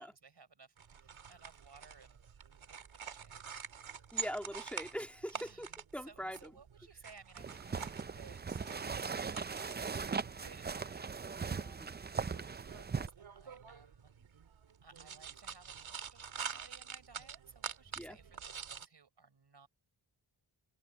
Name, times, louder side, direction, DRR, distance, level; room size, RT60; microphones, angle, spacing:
voice 1, 0.0-2.2 2.6-3.8 5.3-10.0 10.3-14.1 14.8-19.7, right 5 dB, 55° right, 5.1 m, -60 dB
sound 1, 0.8-18.9, right 6 dB, 70° right, 2.3 m, -47 dB
voice 2, 4.1-5.7 5.9-6.5 11.6-11.9 18.0-18.2, equal, 5° left, 2.6 m, -42 dB
sound 2, 7.4-13.1, right 5 dB, 20° right, 0.4 m, -39 dB
wide cardioid pair, 95°, 49 cm